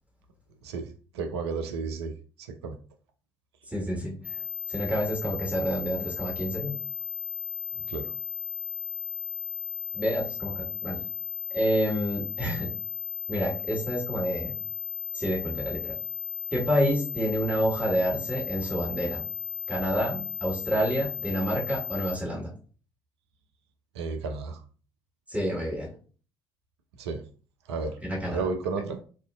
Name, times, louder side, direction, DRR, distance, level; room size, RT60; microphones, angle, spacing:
voice 1, 1.1-2.1 2.4-2.8 7.9-8.1 24.0-24.6 27.0-27.2 27.7-28.0 28.3-29.0, right 4 dB, 80° right, 6 dB, 0.4 m, -32 dB
voice 2, 3.7-4.4 4.7-6.7 9.9-11.0 11.5-12.7 13.3-14.5 15.1-15.9 16.5-19.2 19.7-22.5 25.3-25.9 28.0-28.4, equal, 10° right, -4 dB, 1.4 m, -28 dB
sound 1, 4.2-22.2, left 7 dB, 20° left, 0.6 m, -35 dB
4.2 x 2.5 x 2.3 m, 0.40 s
figure-of-eight pair, 45°, 14 cm